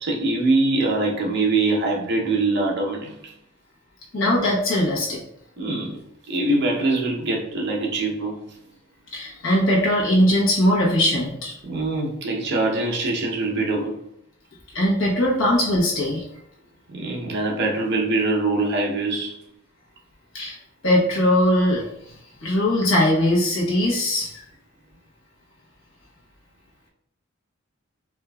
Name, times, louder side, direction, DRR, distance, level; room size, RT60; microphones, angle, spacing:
voice 1, 0.0-3.1 5.6-6.0 6.3-8.4 11.6-14.0 16.9-19.4, right 2 dB, 55° right, 0 dB, 0.8 m, -23 dB
voice 2, 4.1-5.2 9.1-11.5 14.7-16.2 20.3-20.6 20.8-21.8 22.4-24.4, left 1 dB, 70° left, -4 dB, 1.1 m, -20 dB
4.4 x 2.6 x 2.3 m, 0.74 s
head